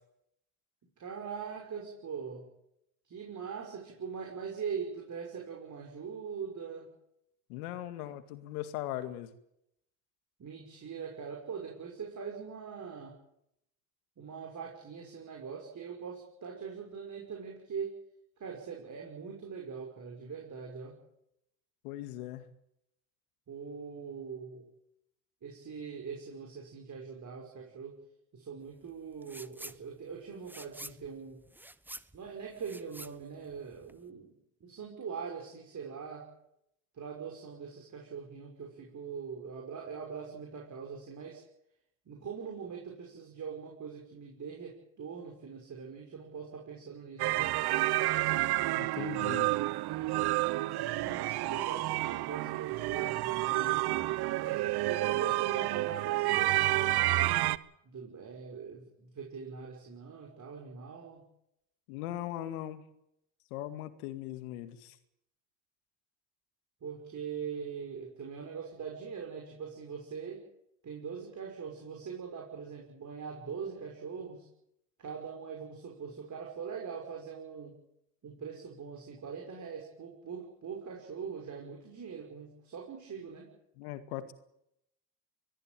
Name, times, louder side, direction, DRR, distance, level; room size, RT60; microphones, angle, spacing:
voice 1, 1.0-2.5 3.0-6.9 10.4-13.2 14.2-18.0 18.4-21.0 23.5-24.6 25.4-28.0 28.3-31.4 32.1-36.3 36.9-41.4 42.1-47.6 51.0-57.4 57.8-61.2 66.8-70.4 70.8-74.5 75.0-77.7 78.2-83.5, right 6 dB, 45° right, 0 dB, 6.0 m, -42 dB
voice 2, 7.5-9.3 21.8-22.5 48.8-49.5 61.9-62.8 63.5-65.0 83.8-84.3, left 13 dB, 90° left, 10 dB, 2.2 m, -39 dB
sound 1, 29.2-29.8 30.1-34.1, right 1 dB, 5° right, 1.0 m, -48 dB
sound 2, 47.2-57.6, right 18 dB, 60° right, 1.0 m, -30 dB
22.5 x 14.0 x 9.2 m, 0.80 s
supercardioid pair, 85°, 43 cm